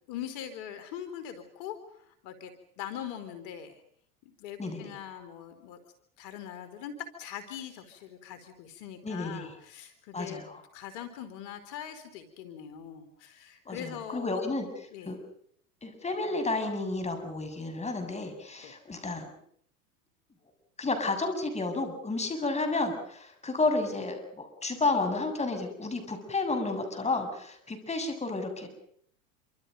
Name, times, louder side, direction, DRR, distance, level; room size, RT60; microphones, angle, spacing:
voice 1, 0.1-3.8 4.3-5.8 6.2-10.4 10.7-14.4 14.9-15.2 18.6-18.8, left 9 dB, 60° left, 9 dB, 3.9 m, -42 dB
voice 2, 4.6-5.0 9.0-9.5 10.1-10.6 13.7-14.7 15.1-15.2 15.8-19.3 20.8-28.7, left 3 dB, 15° left, 6 dB, 7.2 m, -31 dB
28.0 x 26.0 x 5.4 m, 0.65 s
hypercardioid pair, 110°, 42 cm